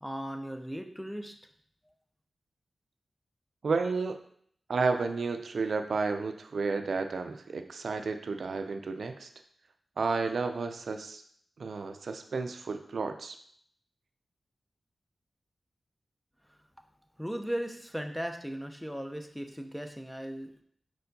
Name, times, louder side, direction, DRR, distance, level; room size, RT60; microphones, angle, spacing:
voice 1, 0.0-1.3 17.2-20.5, equal, ahead, 5 dB, 0.5 m, -37 dB
voice 2, 3.6-4.2 4.7-9.3 10.0-11.2 11.6-13.4, right 4 dB, 75° right, 7 dB, 0.3 m, -31 dB
4.5 x 4.3 x 2.7 m, 0.63 s
wide cardioid pair, 90°, 0 cm